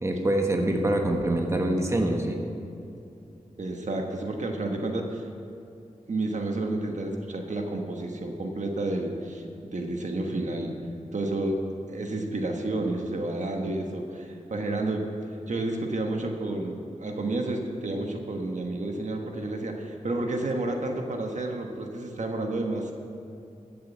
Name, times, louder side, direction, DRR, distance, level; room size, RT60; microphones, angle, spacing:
voice 1, 0.0-2.4, right 1 dB, 20° right, 2 dB, 1.4 m, -25 dB
voice 2, 3.6-5.3 6.1-9.4 9.7-10.8 11.1-11.6 11.9-15.1 15.5-22.9, right 2 dB, 60° right, 2 dB, 1.3 m, -30 dB
13.5 x 7.7 x 7.3 m, 2.6 s
wide cardioid pair, 85°, 14 cm